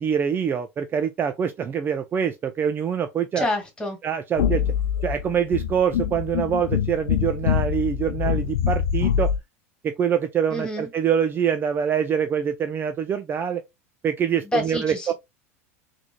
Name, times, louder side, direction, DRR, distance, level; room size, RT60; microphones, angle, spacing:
voice 1, 0.0-3.5 4.0-4.6 5.0-9.3 9.8-13.6 14.0-15.1, right 8 dB, 30° right, 0.4 m, -24 dB
voice 2, 3.4-4.0 10.5-10.9 14.4-15.1, left 2 dB, 10° left, 1.8 m, -28 dB
sound 1, 4.4-9.4, left 9 dB, 80° left, 0.5 m, -24 dB
3.9 x 3.1 x 2.2 m
hypercardioid pair, 95°, 7 cm